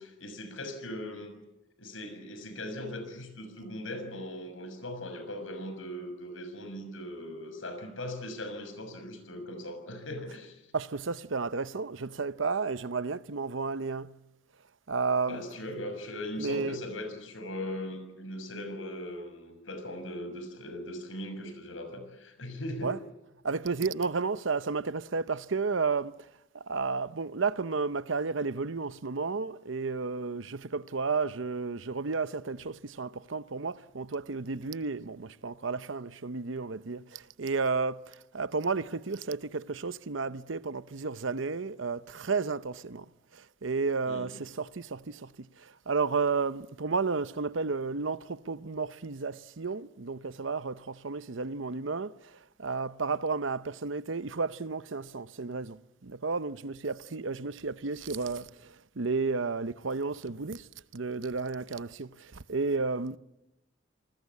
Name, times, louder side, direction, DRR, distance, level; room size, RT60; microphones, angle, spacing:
voice 1, 0.0-1.4 1.8-10.6 15.3-23.0 44.1-44.3, left 1 dB, 80° left, 6.5 m, -39 dB
voice 2, 10.7-14.2 14.9-15.4 16.4-16.8 22.8-23.0 23.4-26.2 26.5-43.1 43.3-52.3 52.6-60.7 60.9-63.2, right 4 dB, 75° right, 0.8 m, -32 dB
28.0 x 20.5 x 8.4 m
head